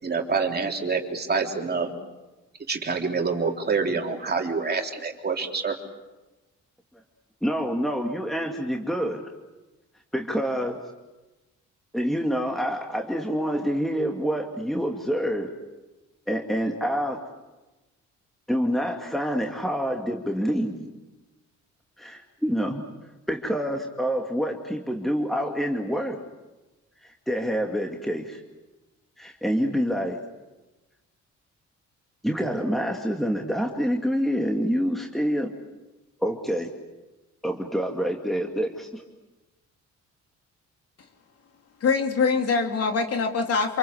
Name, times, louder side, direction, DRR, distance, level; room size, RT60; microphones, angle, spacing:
voice 1, 0.0-1.9 2.7-5.8, right 4 dB, 35° right, 2 dB, 3.6 m, -26 dB
voice 2, 7.4-9.2 10.1-10.8 11.9-15.5 16.3-17.2 18.5-20.9 22.0-22.9 23.3-26.2 27.0-28.4 29.2-30.2 32.2-35.5 36.2-36.7 37.4-39.0, equal, ahead, 2 dB, 2.3 m, -27 dB
voice 3, 41.8-43.8, left 4 dB, 55° left, 4 dB, 3.2 m, -23 dB
28.0 x 23.0 x 8.1 m, 1.1 s
cardioid pair, 90°, 30 cm